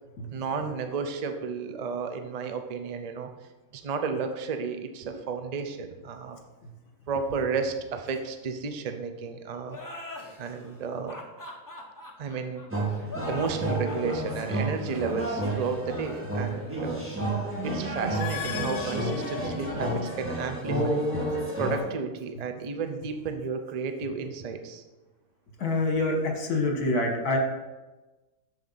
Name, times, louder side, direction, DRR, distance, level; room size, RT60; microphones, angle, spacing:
voice 1, 0.3-3.3 3.7-6.4 7.1-9.8 10.4-11.2 12.2-12.7 13.3-17.0 17.6-21.0 21.6-24.8, right 5 dB, 85° right, 6 dB, 0.3 m, -32 dB
sound 1, 9.7-18.9, left 2 dB, 15° left, 0.8 m, -44 dB
sound 2, 12.7-21.8, right 1 dB, 10° right, 1.7 m, -30 dB
sound 3, 18.0-20.3, left 10 dB, 90° left, 1.2 m, -39 dB
voice 2, 25.6-27.4, left 2 dB, 70° left, 2 dB, 1.9 m, -26 dB
7.8 x 6.9 x 4.0 m, 1.1 s
omnidirectional pair, 1.7 m